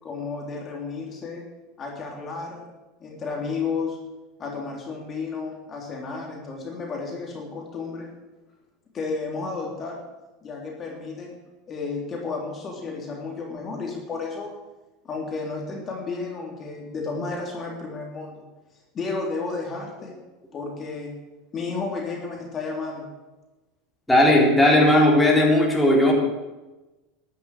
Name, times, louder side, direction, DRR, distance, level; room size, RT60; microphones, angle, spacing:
voice 1, 0.0-1.4 1.8-2.7 3.0-4.0 4.4-8.1 8.9-10.0 10.4-11.4 11.7-14.5 15.0-18.4 18.9-20.1 20.5-21.1 21.5-23.1, left 4 dB, 30° left, 0 dB, 3.6 m, -32 dB
voice 2, 24.1-26.1, left 1 dB, 5° left, -3 dB, 3.8 m, -17 dB
13.5 x 8.5 x 8.7 m, 1.1 s
supercardioid pair, 115°, 0 cm